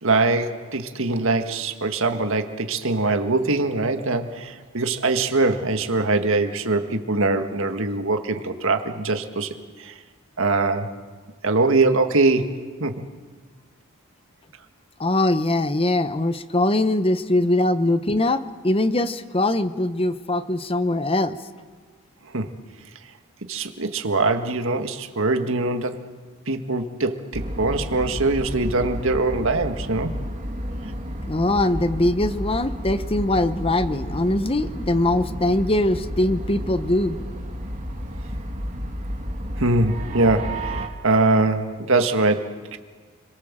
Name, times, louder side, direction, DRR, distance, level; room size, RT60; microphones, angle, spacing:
voice 1, 0.0-9.9 10.4-10.9 11.4-13.0 22.3-22.5 23.5-26.0 26.5-30.2 39.6-42.8, right 3 dB, 60° right, 7 dB, 1.8 m, -22 dB
voice 2, 15.0-21.4 31.3-37.2, left 1 dB, 25° left, 11 dB, 1.0 m, -22 dB
sound 1, 27.3-40.9, equal, 35° right, 2.7 m, -31 dB
30.0 x 22.5 x 7.5 m, 1.5 s
head